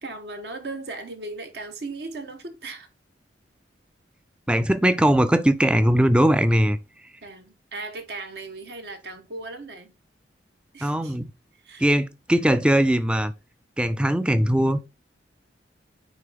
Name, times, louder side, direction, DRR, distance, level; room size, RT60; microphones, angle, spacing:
voice 1, 0.0-2.9 7.2-9.9 10.7-11.2 11.5-11.9, right 3 dB, 60° right, 1.0 m, -37 dB
voice 2, 4.5-6.8 10.8-11.3 11.8-13.3 13.8-14.8, right 1 dB, 5° right, 0.3 m, -20 dB
9.3 x 3.1 x 3.4 m
head